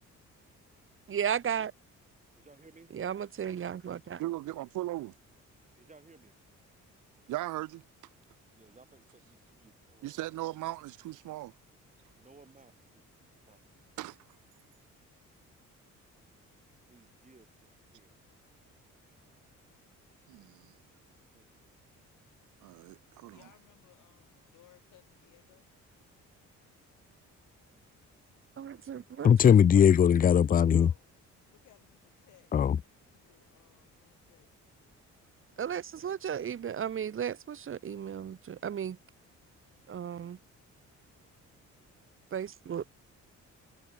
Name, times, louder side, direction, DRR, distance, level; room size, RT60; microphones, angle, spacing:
voice 1, 1.1-1.7 2.9-4.2 28.6-29.3 35.6-39.0 39.9-40.4 42.3-42.9, right 8 dB, 45° right, 1.0 m, -34 dB
voice 2, 2.3-2.9 5.8-6.3 8.5-10.2 12.1-13.6 16.9-17.5 17.9-18.2 21.3-21.5, right 3 dB, 25° right, 5.0 m, -59 dB
voice 3, 4.2-5.1 7.3-7.8 10.0-11.5 14.0-14.2 20.3-20.7 22.6-23.4, right 16 dB, 85° right, 1.2 m, -38 dB
voice 4, 23.3-25.7 30.5-31.1 31.5-32.5 33.1-34.5 35.5-35.8, left 14 dB, 85° left, 7.0 m, -62 dB
voice 5, 29.2-30.9 32.5-32.8, left 8 dB, 30° left, 0.4 m, -20 dB
cardioid pair, 90°, 30 cm